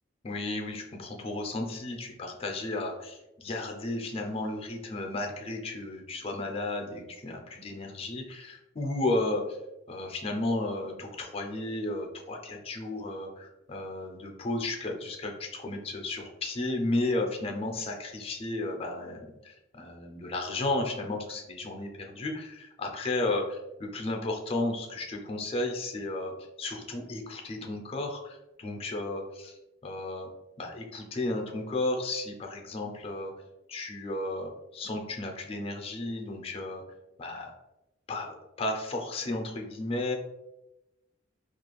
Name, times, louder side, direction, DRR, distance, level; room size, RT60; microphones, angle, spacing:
voice 1, 0.2-9.4 9.9-29.5 29.8-30.3 30.6-33.3 33.7-36.8 37.2-37.5 38.1-40.2, left 2 dB, 30° left, 2 dB, 0.4 m, -33 dB
2.4 x 2.3 x 3.0 m, 0.94 s
head